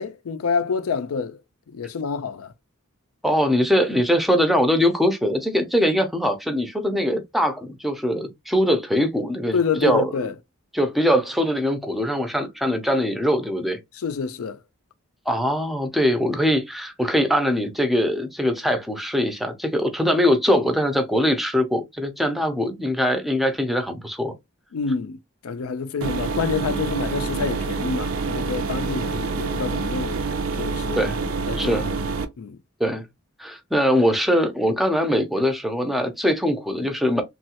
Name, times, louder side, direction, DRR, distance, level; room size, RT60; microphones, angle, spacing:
voice 1, 0.0-1.4 1.7-2.5 9.5-10.3 14.0-14.6 24.7-25.2 25.4-30.2 30.6-31.0 31.5-32.0 32.4-32.6, left 5 dB, 85° left, 0.4 m, -27 dB
voice 2, 3.2-10.3 10.7-13.8 15.3-24.3 31.0-31.2 31.6-31.9 32.8-33.1 33.4-37.2, equal, ahead, 0.5 m, -22 dB
sound 1, 26.0-32.2, right 4 dB, 70° right, 0.5 m, -27 dB
3.1 x 2.3 x 2.8 m
head